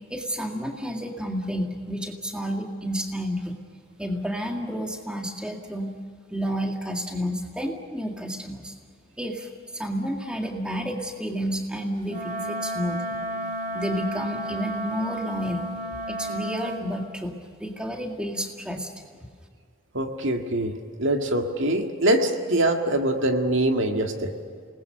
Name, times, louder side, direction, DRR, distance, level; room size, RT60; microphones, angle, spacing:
voice 1, 0.1-3.6 4.0-5.9 6.3-8.7 9.2-13.2 13.7-15.7 16.1-18.9, equal, 5° right, 2 dB, 1.9 m, -30 dB
Wind instrument woodwind instrument, 12.0-16.9, right 1 dB, 35° right, 2.6 m, -32 dB
voice 2, 19.9-20.7 21.0-24.3, right 1 dB, 60° right, 4 dB, 1.9 m, -23 dB
28.5 x 20.0 x 6.6 m, 2.1 s
head